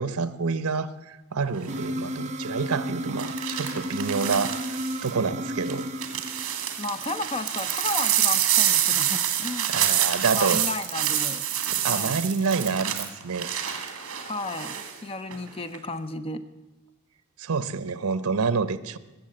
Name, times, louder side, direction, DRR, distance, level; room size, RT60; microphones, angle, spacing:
voice 1, 0.0-5.9 9.7-10.6 11.7-13.5 17.4-19.0, right 4 dB, 80° right, 0.7 m, -28 dB
sound 1, 1.5-1.9 3.2-5.1 5.7-14.9 15.3-15.8, right 11 dB, 65° right, 1.9 m, -27 dB
sound 2, 1.7-7.0, equal, 30° right, 0.9 m, -33 dB
voice 2, 6.8-9.7 10.3-11.4 11.9-12.2 14.2-16.4, left 3 dB, 25° left, 0.6 m, -33 dB
20.5 x 7.4 x 7.6 m
head